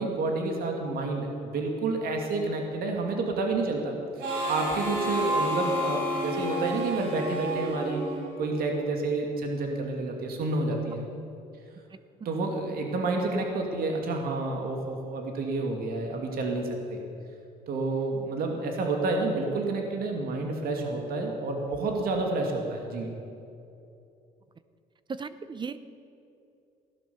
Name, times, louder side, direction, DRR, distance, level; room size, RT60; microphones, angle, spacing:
voice 1, 0.0-4.0 4.5-8.0 8.4-11.0 12.2-17.0 17.7-23.1, right 3 dB, 65° right, 2 dB, 2.4 m, -29 dB
Harmonica, 4.2-8.7, equal, 80° right, 4.7 m, -30 dB
voice 2, 25.1-25.9, right 5 dB, 25° right, 13 dB, 0.7 m, -36 dB
16.5 x 11.5 x 7.1 m, 2.7 s
cardioid pair, 110°, 17 cm